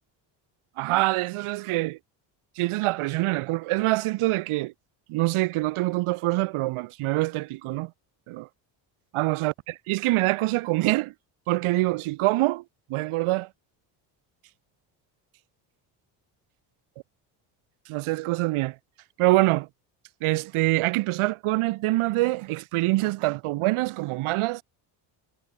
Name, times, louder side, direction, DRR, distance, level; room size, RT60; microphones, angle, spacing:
voice 1, 0.8-2.0 2.6-4.7 5.1-7.9 8.3-8.5 9.1-9.5 9.9-11.1 11.5-12.6 12.9-13.5 17.9-18.8 19.2-19.7 20.2-24.6, right 19 dB, 75° right, 7.5 m, -25 dB
supercardioid pair, 75°, 50 cm